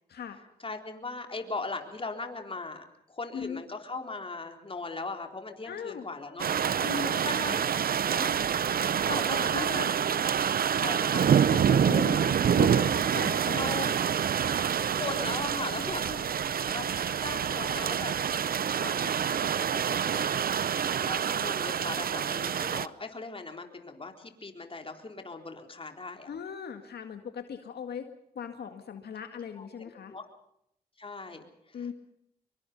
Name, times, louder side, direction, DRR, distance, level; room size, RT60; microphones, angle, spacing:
voice 1, 0.6-6.5 7.2-7.6 8.1-8.3 8.7-9.9 10.8-11.3 13.5-13.9 14.5-16.1 16.4-16.8 17.2-18.1 18.7-20.3 21.0-26.3 29.6-30.2 31.0-31.4, left 3 dB, 35° left, 4 dB, 4.0 m, -39 dB
voice 2, 5.6-6.0 6.8-7.6 9.1-9.9 11.5-14.0 16.1-16.3 26.3-28.1 28.4-30.1 31.7-31.9, left 7 dB, 75° left, 6 dB, 2.0 m, -39 dB
sound 1, 6.4-22.9, right 8 dB, 60° right, 0.8 m, -27 dB
25.5 x 23.0 x 5.4 m, 0.77 s
cardioid pair, 70°, 17 cm